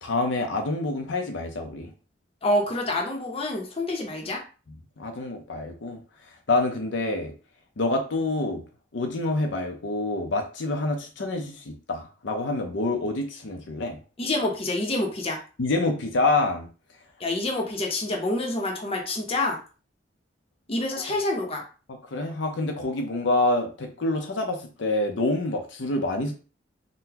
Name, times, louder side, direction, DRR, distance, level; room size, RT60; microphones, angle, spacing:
voice 1, 0.0-1.9 4.7-6.0 6.5-7.3 7.8-8.6 8.9-14.0 15.6-16.7 20.9-21.0 21.9-26.3, left 2 dB, 80° left, 4 dB, 0.6 m, -27 dB
voice 2, 2.4-4.4 14.2-15.4 17.2-19.6 20.7-21.6, left 1 dB, 30° left, 1 dB, 0.7 m, -27 dB
3.8 x 2.1 x 2.8 m, 0.35 s
head